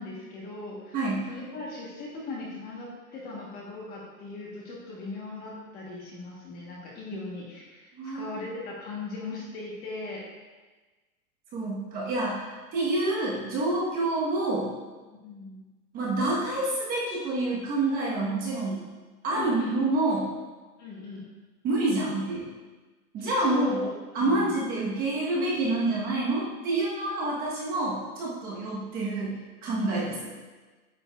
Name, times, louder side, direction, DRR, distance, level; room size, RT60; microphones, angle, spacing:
voice 1, 0.0-1.0 1.3-10.2 15.2-15.6 19.3-19.8 20.8-21.3 23.2-24.5, left 3 dB, 20° left, -3 dB, 1.0 m, -39 dB
voice 2, 0.9-1.3 8.0-8.4 11.5-14.7 15.9-18.8 19.2-20.3 21.6-22.5 23.1-23.8 24.1-30.3, right 2 dB, 20° right, -5 dB, 1.0 m, -28 dB
9.1 x 7.0 x 2.3 m, 1.3 s
hypercardioid pair, 155°, 46 cm